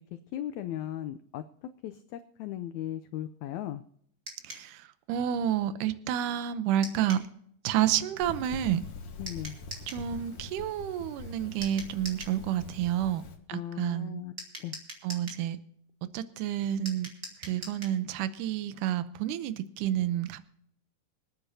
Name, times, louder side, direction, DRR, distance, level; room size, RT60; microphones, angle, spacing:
voice 1, 0.3-1.4 1.8-3.8 9.2-9.6 13.5-14.3 14.6-14.7, left 12 dB, 85° left, 10 dB, 1.6 m, -37 dB
sound 1, 4.3-4.7 6.8-7.3 9.3-10.1 11.6-12.4 14.4-15.4 16.9-18.0, right 2 dB, 25° right, 2.3 m, -43 dB
voice 2, 4.4-4.8 5.1-7.2 7.6-8.9 9.9-13.2 13.5-14.2 15.0-15.6 16.1-17.1 17.4-20.4, right 11 dB, 75° right, 13 dB, 2.2 m, -29 dB
sound 2, 8.2-13.3, left 4 dB, 65° left, 3.2 m, -44 dB
25.5 x 9.0 x 2.7 m, 0.67 s
omnidirectional pair, 4.0 m